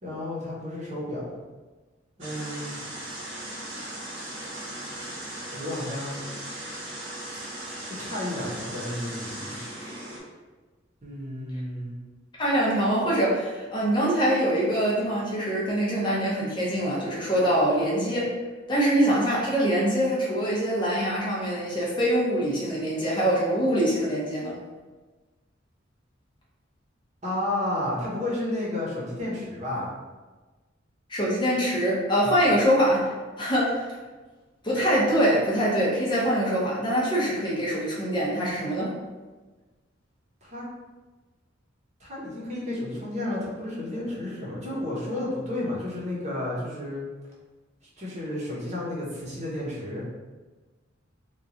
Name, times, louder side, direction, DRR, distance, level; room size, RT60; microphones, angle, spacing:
voice 1, 0.0-1.3 2.2-2.7 5.5-6.2 7.6-9.6 11.0-11.9 27.2-29.9 40.4-40.6 42.0-47.0 48.0-50.0, left 1 dB, 35° right, -6 dB, 0.9 m, -32 dB
sound 1, 2.2-10.2, right 1 dB, 80° right, 1.1 m, -38 dB
voice 2, 12.4-18.3 18.7-24.6 31.1-33.1 33.4-33.9 34.6-38.9, equal, 25° left, -6 dB, 0.8 m, -24 dB
3.0 x 2.4 x 3.7 m, 1.3 s
head